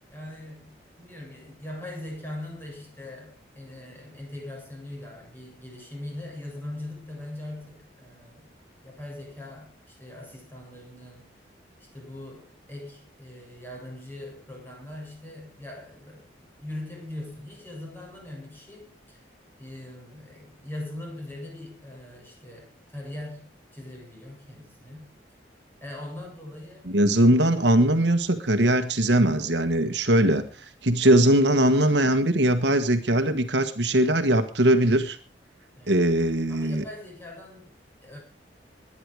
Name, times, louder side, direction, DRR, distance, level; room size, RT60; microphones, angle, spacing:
voice 1, 0.1-8.5 8.8-11.4 11.8-19.3 19.6-25.1 25.8-27.5 35.8-36.1 36.5-38.2, left 1 dB, 10° left, 0 dB, 7.5 m, -41 dB
voice 2, 26.9-30.5 30.8-35.2 35.9-36.8, right 1 dB, 75° right, 8 dB, 1.6 m, -21 dB
21.5 x 10.0 x 4.9 m, 0.37 s
head